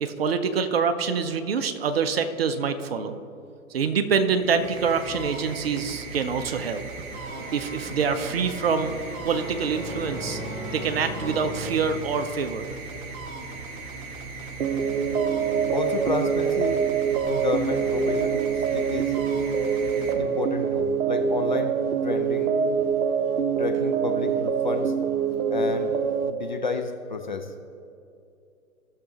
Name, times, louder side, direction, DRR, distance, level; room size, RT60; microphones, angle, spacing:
voice 1, 0.0-3.2 3.7-6.8 7.5-8.9 9.2-10.4 10.7-12.7, right 5 dB, 45° right, 9 dB, 0.7 m, -25 dB
sound 1, 4.3-20.8, right 3 dB, 25° right, 1.1 m, -38 dB
sound 2, 7.1-12.7, equal, 10° left, 1.7 m, -38 dB
sound 3, 14.6-26.3, right 6 dB, 85° right, 0.7 m, -25 dB
voice 2, 15.7-16.8 17.3-19.1 20.2-21.8 22.0-22.5 23.6-24.9 25.5-25.9 26.2-27.5, left 4 dB, 35° left, 5 dB, 0.4 m, -31 dB
16.5 x 6.7 x 2.9 m, 2.6 s
figure-of-eight pair, 130°, 43 cm